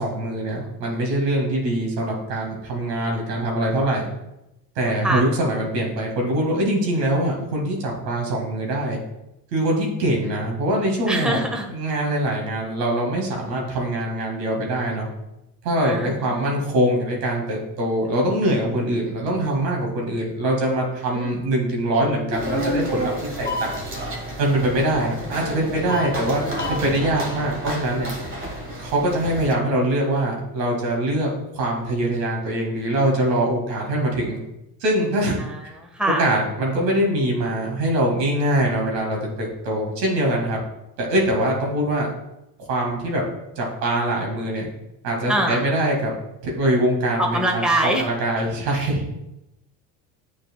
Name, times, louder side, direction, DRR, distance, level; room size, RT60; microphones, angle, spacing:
voice 1, 0.0-4.1 4.8-9.0 9.5-11.4 11.7-15.1 15.6-23.1 23.4-23.7 24.4-28.1 28.8-34.4 34.8-35.7 36.2-40.6 41.0-42.1 42.7-43.2 43.6-44.7 45.0-46.1 46.4-49.2, right 1 dB, 85° right, 0 dB, 1.9 m, -23 dB
voice 2, 4.8-5.2 11.1-11.7 15.8-16.6 21.1-21.4 24.7-25.8 35.4-36.2 45.3-45.6 47.2-48.1, right 1 dB, ahead, 1 dB, 1.2 m, -25 dB
sound 1, 22.3-29.5, equal, 25° right, 1.4 m, -30 dB
9.2 x 4.7 x 2.2 m, 0.92 s
hypercardioid pair, 80°, 48 cm